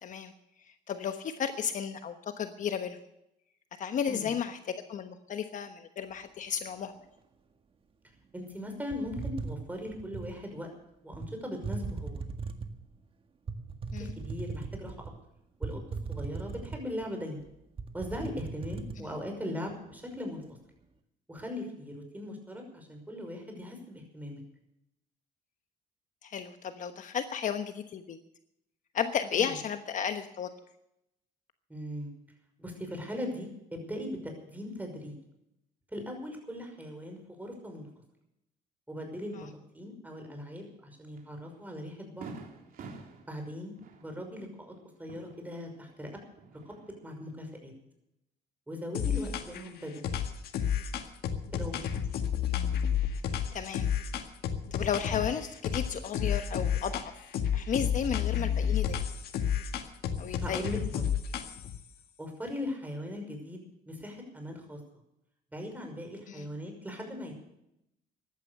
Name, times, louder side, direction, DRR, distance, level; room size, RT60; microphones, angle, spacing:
voice 1, 0.0-0.3 0.6-3.0 3.8-6.9 13.9-14.1 19.0-19.1 26.2-28.2 28.9-30.5 39.3-39.5 49.1-49.3 53.5-53.9 54.7-57.1 57.5-59.0 60.2-60.6 66.3-66.5, left 8 dB, 50° left, 8 dB, 1.2 m, -33 dB
voice 2, 8.3-10.7 11.0-12.2 14.0-15.1 15.6-15.8 16.1-17.4 17.9-20.4 21.3-24.4 29.4-29.6 31.7-32.1 32.6-35.1 35.9-37.9 38.9-39.5 39.7-42.3 43.3-43.7 44.0-44.7 45.0-46.1 46.7-46.8 47.0-47.7 48.7-50.1 51.5-51.9 60.4-61.0 62.2-64.8 65.5-67.4, left 1 dB, 10° right, 3 dB, 5.7 m, -39 dB
sound 1, 8.9-10.4 11.1-11.3 11.6-12.8 13.5-15.1 15.6-17.1 17.4-17.5 17.8-19.0, right 4 dB, 30° right, 1.8 m, -38 dB
Fireworks, 41.2-41.3 41.7-41.8 42.2-46.0 46.3-47.2, right 4 dB, 55° right, 3.5 m, -48 dB
sound 2, 48.9-49.7 50.0-55.3 55.6-57.1 57.3-61.8, left 8 dB, 70° left, 1.7 m, -31 dB
15.5 x 11.5 x 6.7 m, 0.81 s
cardioid pair, 110°, 17 cm